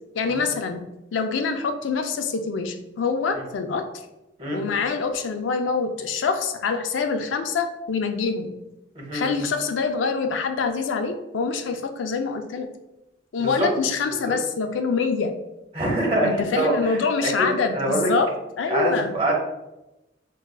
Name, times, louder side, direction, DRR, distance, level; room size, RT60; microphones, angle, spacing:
voice 1, 0.2-0.8 1.1-3.8 4.5-8.5 9.1-12.7 13.3-15.3 16.2-18.3 18.6-19.1, left 5 dB, 80° left, 6 dB, 0.4 m, -25 dB
voice 2, 8.9-9.4 13.4-13.7 14.2-14.3 15.7-18.1 18.7-19.3, right 1 dB, 30° right, -2 dB, 1.0 m, -25 dB
4.7 x 2.3 x 2.3 m, 0.95 s
head